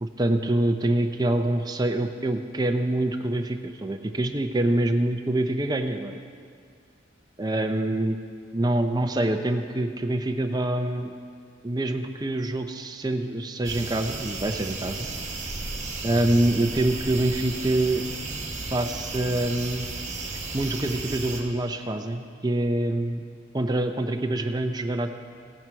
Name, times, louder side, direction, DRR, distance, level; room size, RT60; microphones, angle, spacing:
voice 1, 0.0-6.2 7.4-8.2 8.5-11.1 11.6-15.1 16.0-18.0 18.7-19.9 20.5-23.2 23.5-25.1, right 1 dB, 20° right, 5 dB, 0.5 m, -25 dB
sound 1, 13.6-21.4, right 3 dB, 40° right, 1.3 m, -34 dB
15.5 x 9.2 x 4.6 m, 2.2 s
head